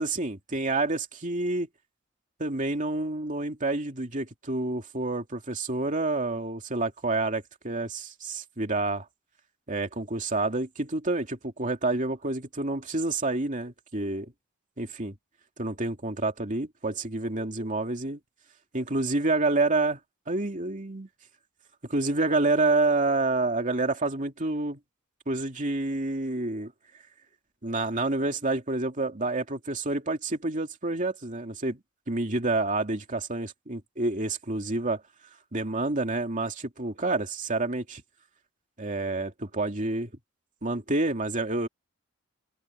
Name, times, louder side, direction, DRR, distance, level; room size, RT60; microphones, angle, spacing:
voice 1, 0.0-1.7 2.4-9.1 9.7-14.3 14.8-15.1 15.6-18.2 18.7-20.0 20.3-21.1 21.9-24.8 25.3-26.7 27.6-35.0 35.5-38.0 38.8-40.1 40.6-41.7, right 2 dB, 35° right, 2.6 m, -28 dB
head